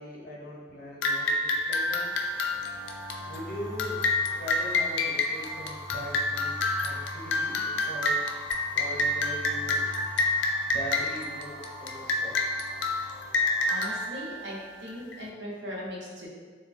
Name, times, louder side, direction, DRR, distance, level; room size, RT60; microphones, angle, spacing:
voice 1, 0.0-2.1 3.2-4.0 4.3-8.2 8.7-9.8 10.7-12.4, equal, 50° left, -4 dB, 0.6 m, -40 dB
sound 1, 1.0-15.2, left 2 dB, 90° left, 0.3 m, -29 dB
sound 2, 1.7-14.0, equal, 10° right, 0.3 m, -44 dB
voice 2, 13.7-16.3, equal, 80° right, -4 dB, 0.7 m, -38 dB
3.3 x 2.1 x 2.4 m, 1.5 s
head